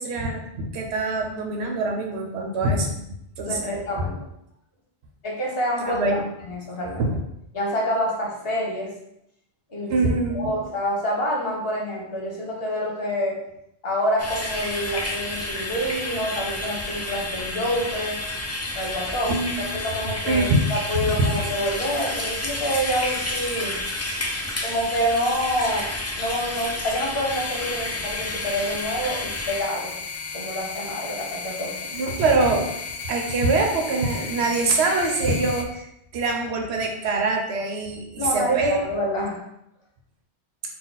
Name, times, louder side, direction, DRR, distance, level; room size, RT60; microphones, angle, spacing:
voice 1, 0.0-3.0 3.4-3.8 5.8-6.2 7.0-7.2 9.9-10.5 19.3-19.7 20.3-20.6 21.0-21.3 31.9-32.7 33.1-38.8, right 3 dB, 75° right, 2 dB, 1.0 m, -24 dB
voice 2, 3.5-4.2 5.2-6.1 6.4-7.1 7.5-8.9 9.7-10.0 10.3-13.4 13.8-18.2 18.7-23.8 24.6-25.9 26.2-29.9 30.3-31.7 38.2-39.4, equal, 60° left, -2 dB, 1.3 m, -27 dB
sound 1, 14.2-29.6, left 1 dB, 25° left, 0.3 m, -30 dB
sound 2, 27.3-35.7, left 5 dB, 85° left, 0.9 m, -34 dB
4.2 x 2.4 x 3.9 m, 0.80 s
omnidirectional pair, 1.1 m